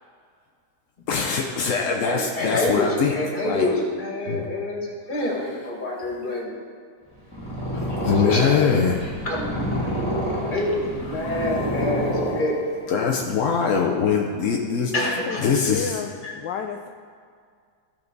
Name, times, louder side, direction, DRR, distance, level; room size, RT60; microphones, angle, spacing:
voice 1, 1.1-3.1 3.4-3.7 4.3-4.5 7.7-9.0 10.4-10.6 11.2-11.7 12.1-12.4 12.9-15.1 15.4-16.0, left 6 dB, 60° left, 0 dB, 0.9 m, -23 dB
voice 2, 2.0-6.6 8.2-10.1 10.5-12.6 14.1-14.2 14.9-15.4 16.2-16.3, left 1 dB, 25° left, -3 dB, 2.1 m, -27 dB
Purr, 7.2-12.9, equal, 5° left, 2.6 m, -28 dB
voice 3, 15.0-16.9, left 7 dB, 75° left, 4 dB, 1.2 m, -31 dB
15.5 x 5.9 x 4.0 m, 2.1 s
omnidirectional pair, 2.0 m